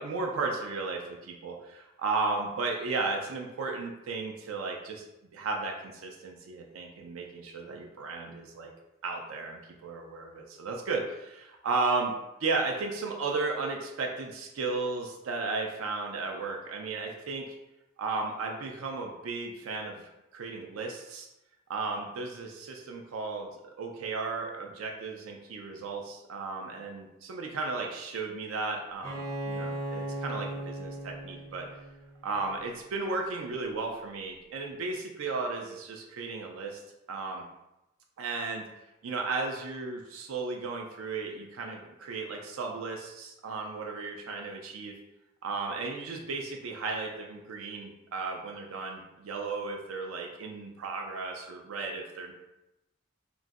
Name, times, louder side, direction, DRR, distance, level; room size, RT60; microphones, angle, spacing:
voice 1, 0.0-5.0 5.3-8.7 9.0-12.1 12.4-17.5 18.0-21.3 21.7-23.5 23.8-31.7 32.2-36.8 37.1-37.5 38.2-38.6 39.0-44.9 45.4-52.3, right 3 dB, 90° right, 2 dB, 0.4 m, -34 dB
Bowed string instrument, 29.0-32.6, right 1 dB, 15° right, 0.5 m, -37 dB
2.9 x 2.5 x 2.4 m, 0.93 s
head